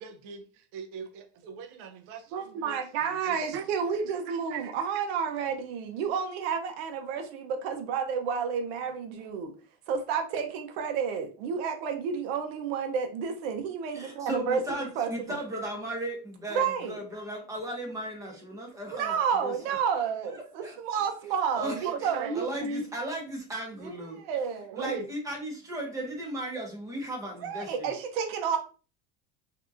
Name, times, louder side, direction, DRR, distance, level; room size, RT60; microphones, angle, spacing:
voice 1, 0.0-3.7 4.3-5.0 21.8-22.8 24.7-25.1, right 4 dB, 50° right, 0.6 m, -38 dB
voice 2, 2.3-9.5 9.9-15.4 16.5-17.0 18.9-22.4 23.8-24.9 27.4-28.6, right 6 dB, 80° right, 0.8 m, -31 dB
voice 3, 13.9-19.5 20.6-20.7 21.6-22.1 22.3-24.2 24.8-27.9, right 1 dB, 10° right, 0.8 m, -36 dB
3.5 x 2.7 x 2.5 m
cardioid pair, 160°, 31 cm